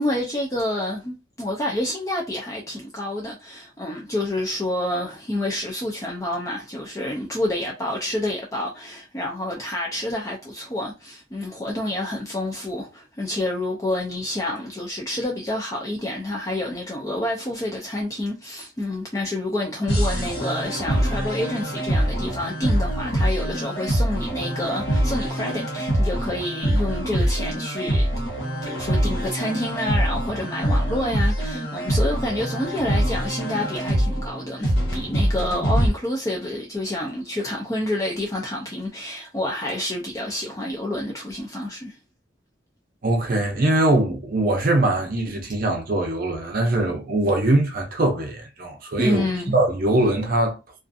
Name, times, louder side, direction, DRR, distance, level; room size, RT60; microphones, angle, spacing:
voice 1, 0.0-28.1 28.6-42.0 49.0-49.5, left 1 dB, 15° left, 0.4 m, -28 dB
sound 1, 19.9-35.9, right 1 dB, 65° left, 1.1 m, -24 dB
voice 2, 43.0-50.8, right 2 dB, 50° right, 0.6 m, -22 dB
2.4 x 2.4 x 2.5 m
head